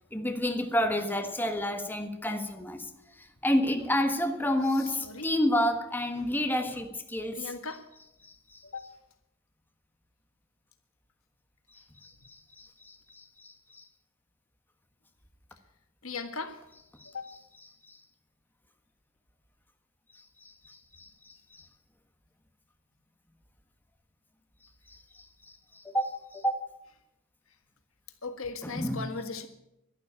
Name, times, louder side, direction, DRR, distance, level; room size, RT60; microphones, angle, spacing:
voice 1, 0.1-2.9 3.1-7.5 8.2-8.6 11.7-13.9 17.0-17.1 17.9-18.0 20.4-21.7 24.9-26.6 28.6-29.1, equal, 10° left, 6 dB, 1.4 m, -30 dB
voice 2, 5.0-5.3 6.2-6.3 7.3-7.9 8.6-8.9 16.0-16.6 17.1-17.3 28.2-29.5, left 4 dB, 85° left, 7 dB, 1.7 m, -38 dB
12.0 x 11.5 x 8.7 m, 0.86 s
head